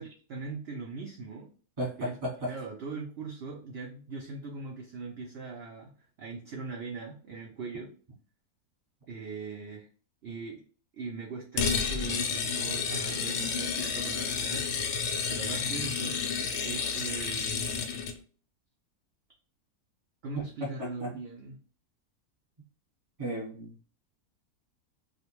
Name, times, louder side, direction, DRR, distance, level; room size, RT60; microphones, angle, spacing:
voice 1, 0.0-1.5 2.0-2.2 2.5-7.9 9.1-9.9 10.2-10.6 10.9-14.6 15.3-16.2 16.6-17.9 20.2-21.6, right 4 dB, 75° right, 0 dB, 0.5 m, -40 dB
voice 2, 1.8-2.5 20.3-21.1 23.2-23.9, equal, 25° right, -2 dB, 1.0 m, -35 dB
sound 1, 11.6-18.2, left 6 dB, 70° left, 0.8 m, -31 dB
2.4 x 2.2 x 2.9 m, 0.39 s
omnidirectional pair, 1.6 m